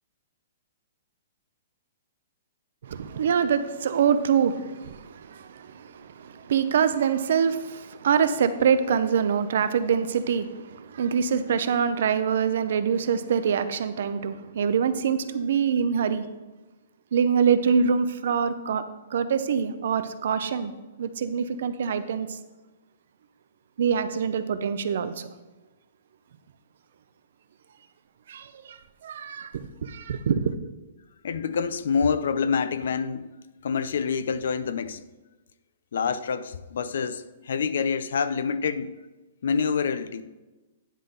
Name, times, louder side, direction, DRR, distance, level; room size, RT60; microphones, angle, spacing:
voice 1, 2.8-16.3 17.1-18.8 19.1-20.7 21.0-22.4 23.8-25.3 28.3-30.6, right 7 dB, 60° right, 0.6 m, -25 dB
voice 2, 31.2-33.3 33.6-35.0 35.9-39.0 39.4-40.2, left 6 dB, 70° left, 0.5 m, -27 dB
10.0 x 3.8 x 6.4 m
hypercardioid pair, 165°, 0 cm